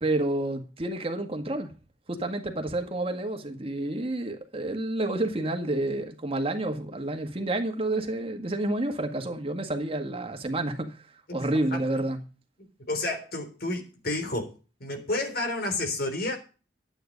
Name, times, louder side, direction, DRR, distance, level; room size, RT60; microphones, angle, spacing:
voice 1, 0.0-1.7 2.1-11.1 11.3-12.2, right 2 dB, 30° right, 1.8 m, -29 dB
voice 2, 12.9-14.5 14.8-16.4, left 2 dB, 55° left, 3.7 m, -30 dB
12.0 x 9.0 x 5.2 m
head